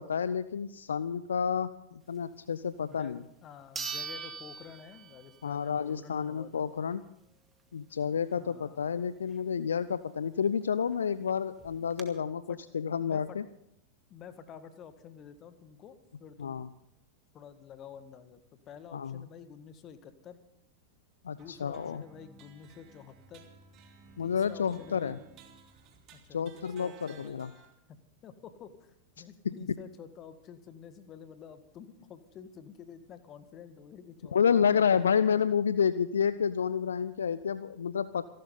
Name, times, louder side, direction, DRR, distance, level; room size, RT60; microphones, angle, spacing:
voice 1, 0.0-3.2 5.4-7.0 7.7-13.4 16.4-16.7 18.9-19.2 21.2-22.0 24.2-25.2 26.3-27.5 29.4-29.5 34.3-38.2, left 7 dB, 70° left, 16 dB, 0.5 m, -30 dB
voice 2, 2.8-6.7 8.3-8.8 12.5-12.6 13.0-13.4 14.1-16.7 17.3-20.4 21.3-23.5 24.2-25.2 26.1-27.4 27.9-28.0 28.2-35.1, left 8 dB, 30° left, 11 dB, 1.7 m, -50 dB
sound 1, 2.9-3.0 3.7-5.5 5.9-6.0 10.6-10.7 10.9-11.0 11.6-12.0, right 5 dB, 15° right, 2.2 m, -40 dB
sound 2, 21.4-27.7, right 5 dB, 35° right, 2.2 m, -57 dB
27.5 x 12.0 x 3.9 m, 0.78 s
figure-of-eight pair, 90°, 0 cm